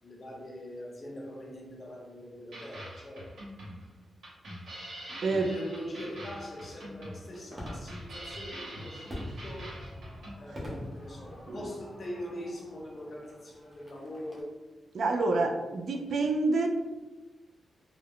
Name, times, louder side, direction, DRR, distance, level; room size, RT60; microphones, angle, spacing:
voice 1, 0.0-3.3 5.2-9.9 10.4-14.6, equal, 35° left, -2 dB, 0.6 m, -42 dB
sound 1, 2.5-10.3, right 1 dB, 85° right, 1.1 m, -44 dB
voice 2, 5.2-5.5 11.5-11.7 14.9-16.7, right 3 dB, 65° right, 4 dB, 0.3 m, -28 dB
Fireworks, 6.1-14.4, left 1 dB, 25° right, 0.7 m, -45 dB
2.3 x 2.0 x 3.5 m, 1.1 s
wide cardioid pair, 140°, 0 cm